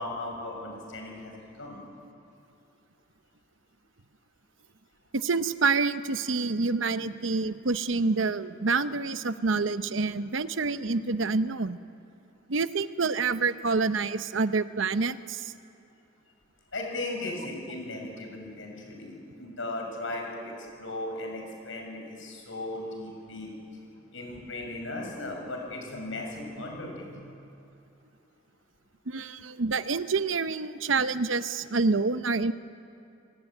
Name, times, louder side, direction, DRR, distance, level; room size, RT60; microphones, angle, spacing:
voice 1, 0.0-1.8 16.7-23.5 24.1-27.3, left 2 dB, 75° left, 1 dB, 6.5 m, -37 dB
voice 2, 5.1-11.8 12.5-15.5 29.1-32.5, right 4 dB, 75° right, 12 dB, 0.9 m, -27 dB
27.5 x 18.0 x 9.1 m, 2.7 s
head